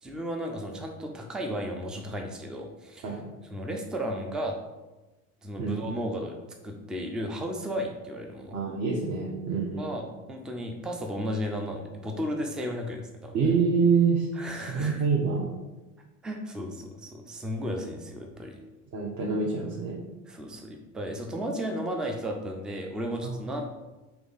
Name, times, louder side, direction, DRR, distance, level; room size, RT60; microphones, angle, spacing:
voice 1, 0.0-3.2 3.5-4.6 5.4-6.4 6.6-8.6 9.8-13.4 14.3-15.1 16.2-18.6 20.3-23.7, equal, ahead, 3 dB, 0.3 m, -34 dB
voice 2, 8.5-9.9 13.3-14.3 14.7-15.4 18.9-20.0 23.2-23.3, right 5 dB, 35° right, -2 dB, 0.8 m, -26 dB
3.4 x 3.0 x 4.0 m, 1.1 s
hypercardioid pair, 75°, 45 cm